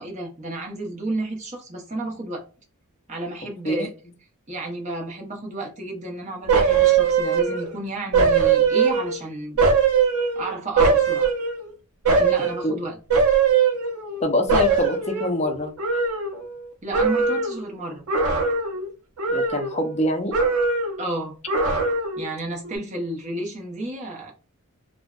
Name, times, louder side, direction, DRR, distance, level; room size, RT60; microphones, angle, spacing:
voice 1, 0.0-2.5 3.1-3.9 4.5-9.6 10.3-11.3 12.1-13.0 16.8-18.0 21.0-21.4 22.2-24.3, right 2 dB, 30° right, 0.7 m, -31 dB
sound 1, 6.5-7.8 8.1-9.2 9.6-11.7 12.0-12.6 13.1-14.2 14.5-16.6 16.9-17.6 18.1-18.9 19.2-20.0 20.3-21.0 21.5-22.3 22.6-22.8, right 5 dB, 80° right, 0.6 m, -21 dB
voice 2, 14.2-15.7 19.3-20.4, left 1 dB, 30° left, 0.4 m, -24 dB
2.6 x 2.1 x 2.3 m
head